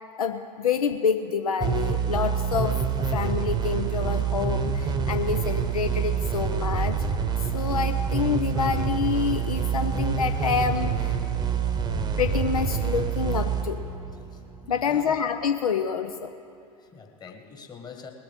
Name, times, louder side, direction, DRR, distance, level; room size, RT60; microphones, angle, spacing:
voice 1, 0.2-7.1 7.5-11.3 12.2-13.8 14.7-16.3, left 6 dB, 70° left, 8 dB, 0.6 m, -27 dB
sound 1, 1.6-14.9, right 7 dB, 20° right, 0.9 m, -27 dB
voice 2, 14.3-15.2 16.8-18.1, left 5 dB, 20° left, 4 dB, 1.5 m, -45 dB
19.5 x 7.7 x 7.1 m, 2.6 s
figure-of-eight pair, 80°, 19 cm